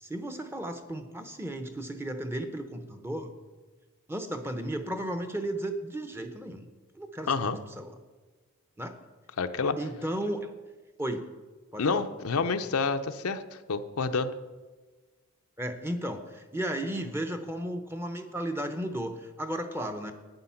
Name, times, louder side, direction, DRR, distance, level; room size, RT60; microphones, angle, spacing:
voice 1, 0.0-3.3 4.1-6.7 6.9-7.9 8.8-8.9 9.8-10.5 11.0-11.3 11.7-12.0 15.6-20.1, right 1 dB, 10° right, 7 dB, 0.8 m, -34 dB
voice 2, 7.3-7.6 9.4-9.8 11.8-13.4 13.7-14.3, left 4 dB, 70° left, 8 dB, 0.6 m, -28 dB
11.5 x 9.2 x 5.8 m, 1.3 s
head